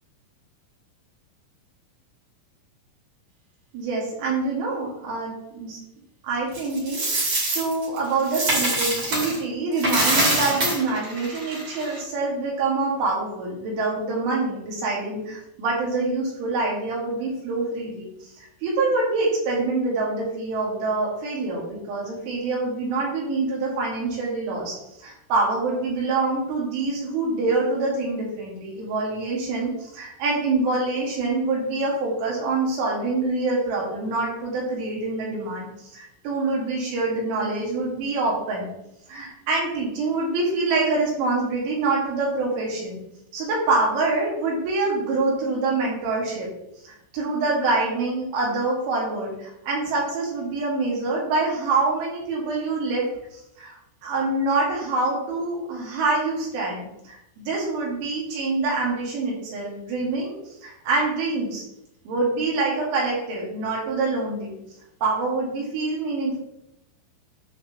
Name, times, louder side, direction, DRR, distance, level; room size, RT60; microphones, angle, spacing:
voice 1, 3.7-5.8 6.2-7.3 7.6-38.7 39.1-43.0 43.3-46.5 46.8-53.1 53.3-53.8 54.0-60.3 60.6-61.6 62.1-64.6 65.0-66.4, right 3 dB, 70° right, -4 dB, 4.1 m, -25 dB
Coin (dropping), 6.5-9.4 9.7-12.0, right 2 dB, 40° right, 2.4 m, -24 dB
10.5 x 6.0 x 2.9 m, 0.84 s
omnidirectional pair, 5.9 m